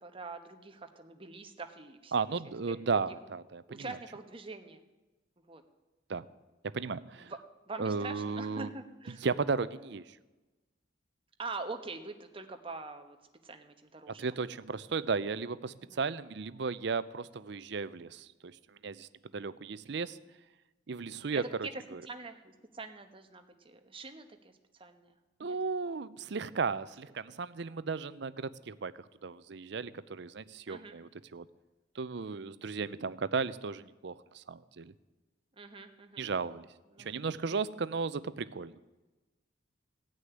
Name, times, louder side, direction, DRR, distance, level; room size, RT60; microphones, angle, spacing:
voice 1, 0.0-2.1 2.7-2.8 3.7-4.8 5.5-5.6 7.7-9.2 11.4-13.2 13.4-14.2 15.9-16.0 21.3-21.4 22.1-24.5 24.8-25.2 25.5-25.6 26.7-26.9 30.7-30.9 35.6-36.2 36.9-37.1 37.5-37.6, right 3 dB, 30° right, 6 dB, 1.1 m, -44 dB
voice 2, 2.1-4.0 6.1-6.3 6.6-7.3 7.8-8.7 9.1-10.2 14.1-20.2 20.9-22.0 25.4-31.5 31.9-34.9 36.2-36.7 37.0-38.8, right 5 dB, 65° right, 16 dB, 0.5 m, -35 dB
16.5 x 6.4 x 9.6 m, 1.1 s
head